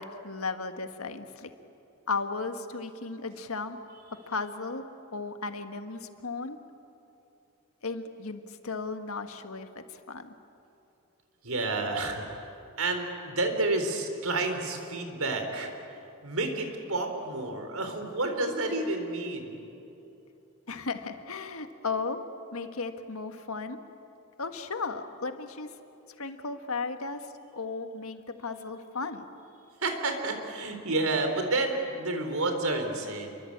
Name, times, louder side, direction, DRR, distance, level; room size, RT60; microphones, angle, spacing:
voice 1, 0.0-1.5 2.1-3.8 4.3-4.8 5.1-6.6 7.8-10.3 20.7-22.2 22.5-23.8 24.4-25.7 26.2-29.2, left 4 dB, 90° left, 7 dB, 1.7 m, -35 dB
voice 2, 11.4-12.5 12.8-15.7 16.2-19.7 29.8-33.4, right 2 dB, 90° right, 5 dB, 3.9 m, -30 dB
28.5 x 23.0 x 8.7 m, 2.8 s
head